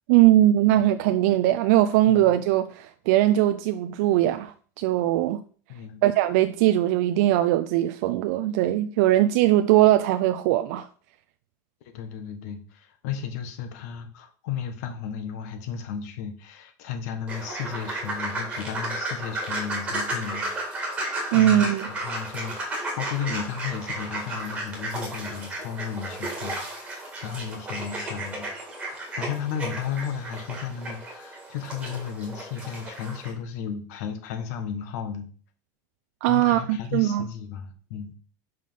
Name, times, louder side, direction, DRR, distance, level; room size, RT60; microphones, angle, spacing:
voice 1, 0.1-5.4 6.0-10.9 21.3-21.9 36.2-37.3, right 14 dB, 55° right, 0.4 m, -20 dB
voice 2, 5.7-6.0 11.9-21.0 21.3-21.6 22.0-28.5 28.7-35.3 36.3-38.1, left 7 dB, 60° left, 1.3 m, -34 dB
sound 1, 17.3-33.3, right 1 dB, 10° right, 2.1 m, -33 dB
5.5 x 5.0 x 5.6 m
supercardioid pair, 170°, 10 cm